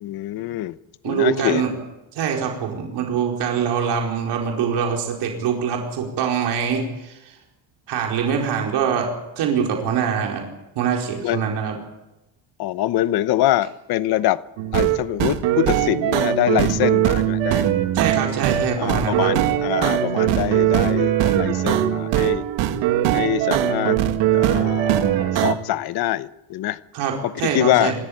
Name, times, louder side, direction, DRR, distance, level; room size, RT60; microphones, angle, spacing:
voice 1, 0.0-0.7 1.0-1.6 11.2-11.5 12.6-14.4 14.7-17.7 18.8-22.4 23.1-24.0 24.3-26.8 27.2-27.9, left 14 dB, 60° left, 15 dB, 1.0 m, -24 dB
voice 2, 1.0-1.7 2.1-7.1 7.9-9.1 9.4-10.4 10.8-11.8 17.9-19.3 26.9-27.9, right 7 dB, 65° right, 1 dB, 4.7 m, -23 dB
sound 1, 14.6-25.5, right 11 dB, 85° right, 2.0 m, -20 dB
27.0 x 14.0 x 8.8 m, 0.95 s
cardioid pair, 175°, 43 cm